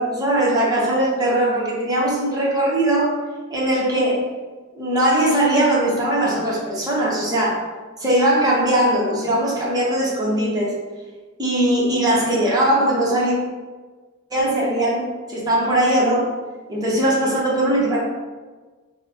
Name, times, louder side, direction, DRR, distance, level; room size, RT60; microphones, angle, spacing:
voice 1, 0.0-3.1 3.5-4.2 4.7-7.6 8.0-10.7 11.4-13.3 14.3-16.3 16.7-18.0, right 1 dB, 20° right, -5 dB, 0.8 m, -20 dB
3.1 x 2.0 x 4.0 m, 1.4 s
head